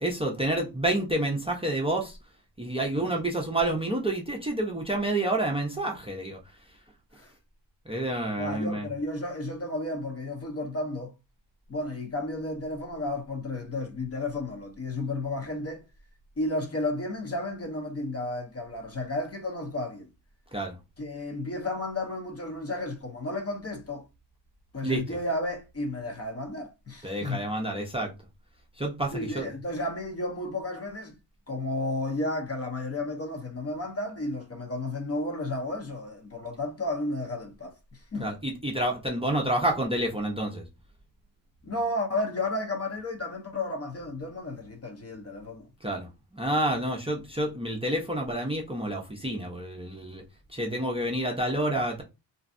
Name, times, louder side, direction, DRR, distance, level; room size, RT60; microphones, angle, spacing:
voice 1, 0.0-2.2 2.6-6.4 7.9-8.9 20.5-20.7 24.8-25.2 27.0-28.1 28.8-29.5 38.2-40.6 45.8-46.1 46.3-50.2 50.5-52.0, right 1 dB, 15° right, 0.5 m, -29 dB
voice 2, 8.4-11.1 11.7-15.8 16.4-20.1 21.0-24.0 24.7-27.5 29.1-31.2 31.5-38.3 41.6-46.0 50.7-50.8, left 2 dB, 30° left, 0.6 m, -33 dB
3.1 x 2.6 x 2.5 m
wide cardioid pair, 120°, 47 cm